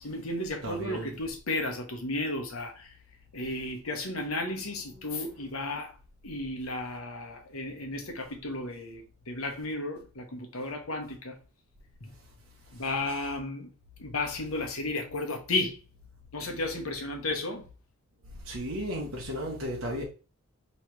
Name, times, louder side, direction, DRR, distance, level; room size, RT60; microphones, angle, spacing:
voice 1, 0.0-2.9 3.3-5.9 6.2-11.4 12.0-12.1 12.7-13.7 14.0-15.8 16.3-17.7, left 2 dB, 90° left, 1.0 m, -33 dB
voice 2, 0.6-1.2 4.9-5.0 5.3-5.4 18.5-20.0, equal, 75° right, 1.1 m, -34 dB
3.2 x 3.0 x 4.5 m
head